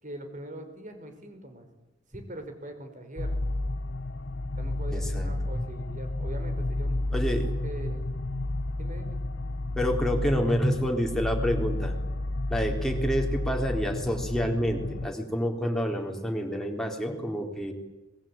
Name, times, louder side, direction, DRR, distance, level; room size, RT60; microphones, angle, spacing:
voice 1, 0.0-1.7 2.1-3.4 4.6-8.1 8.8-9.2, right 1 dB, 45° right, 7 dB, 4.8 m, -42 dB
sound 1, 3.2-15.1, left 2 dB, 90° left, 1.1 m, -31 dB
voice 2, 4.9-5.7 7.1-7.4 9.8-11.9 12.5-17.7, equal, 5° left, 1 dB, 3.9 m, -28 dB
26.0 x 21.0 x 9.0 m, 1.1 s
head